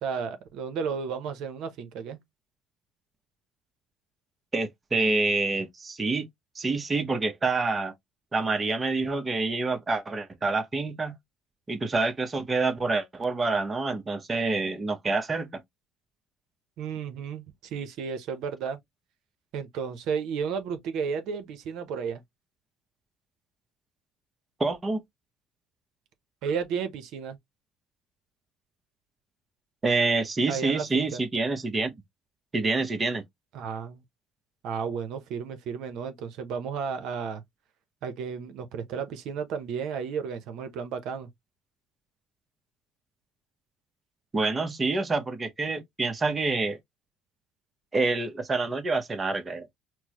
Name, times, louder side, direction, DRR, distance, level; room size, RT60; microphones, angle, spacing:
voice 1, 0.0-2.2 16.8-18.8 19.5-22.2 26.4-27.4 30.5-31.2 33.5-34.0 34.6-37.4 38.0-41.3, right 6 dB, 70° right, 0.7 m, -33 dB
voice 2, 4.5-6.3 6.6-7.9 8.3-11.1 11.7-15.6 24.6-25.0 29.8-31.9 32.5-33.2 44.3-46.8 47.9-49.7, right 3 dB, 25° right, 0.8 m, -27 dB
4.5 x 2.1 x 2.9 m
supercardioid pair, 95°, 0 cm